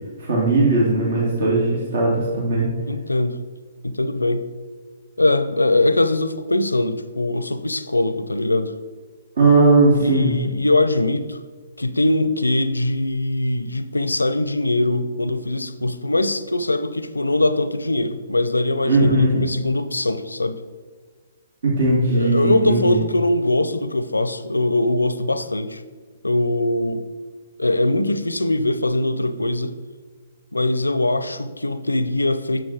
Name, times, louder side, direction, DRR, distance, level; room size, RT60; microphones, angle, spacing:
voice 1, 0.2-2.7 9.4-10.4 18.8-19.4 21.6-23.0, right 2 dB, 65° right, 2.7 m, -18 dB
voice 2, 2.9-3.4 3.8-4.5 5.2-8.7 10.0-11.4 11.8-20.6 22.1-25.8 26.2-27.1 27.6-29.7 30.5-32.6, left 2 dB, 90° left, 0.5 m, -21 dB
9.8 x 7.3 x 3.5 m
figure-of-eight pair, 125°, 0 cm